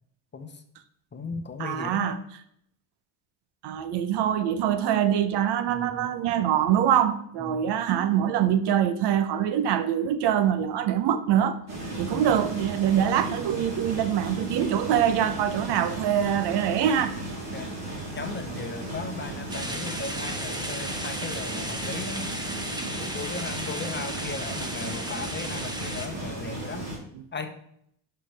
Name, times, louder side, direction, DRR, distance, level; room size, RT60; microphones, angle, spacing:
voice 1, 0.3-0.6 1.1-2.2 5.7-6.1 7.4-7.7 12.0-12.4 17.5-17.7 18.1-22.3 23.0-26.8 27.3-27.6, left 4 dB, 25° left, 1.0 m, -37 dB
voice 2, 1.6-2.2 3.6-11.6 12.0-17.1, right 10 dB, 65° right, 0.8 m, -24 dB
sound 1, 11.7-27.0, right 1 dB, 35° right, 3.5 m, -35 dB
sound 2, 19.5-26.1, right 1 dB, 10° right, 1.2 m, -35 dB
11.0 x 5.7 x 3.4 m
supercardioid pair, 85°, 43 cm